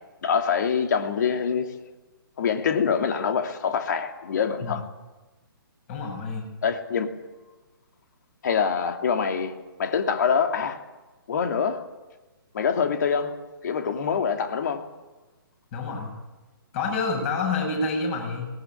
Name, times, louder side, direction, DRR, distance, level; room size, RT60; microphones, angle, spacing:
voice 1, 0.2-1.7 2.4-4.8 6.6-7.1 8.4-9.5 9.8-10.8 11.3-11.9 12.5-13.3 13.6-14.9, left 6 dB, 50° left, 2.6 m, -25 dB
voice 2, 5.9-6.5 15.7-16.1 16.7-18.5, left 3 dB, 35° left, 8.0 m, -28 dB
19.5 x 19.0 x 8.6 m
figure-of-eight pair, 135°, 12 cm